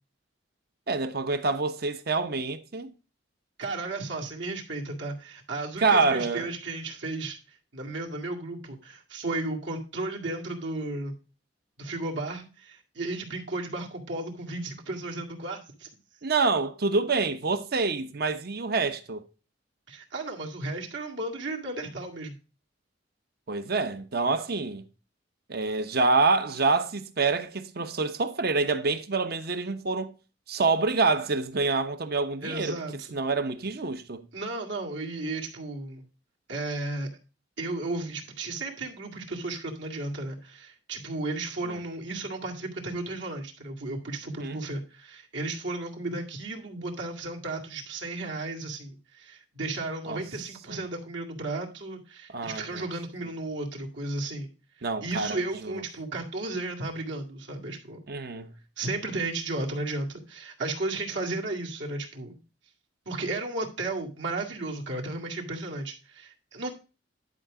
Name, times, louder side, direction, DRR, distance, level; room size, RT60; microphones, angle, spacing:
voice 1, 0.9-2.9 5.8-6.5 16.2-19.2 23.5-24.8 25.5-30.1 30.5-32.8 33.1-34.2 41.7-41.8 44.4-44.6 50.1-50.2 50.7-50.8 52.3-52.8 54.8-55.8 58.1-58.5, right 3 dB, 55° right, 0.9 m, -27 dB
voice 2, 3.6-11.2 11.8-15.9 19.9-22.4 32.4-33.2 34.3-36.1 36.5-37.1 37.6-54.5 55.0-58.0 58.8-62.4 63.1-66.7, right 2 dB, 75° right, 2.1 m, -34 dB
11.0 x 5.0 x 3.6 m
head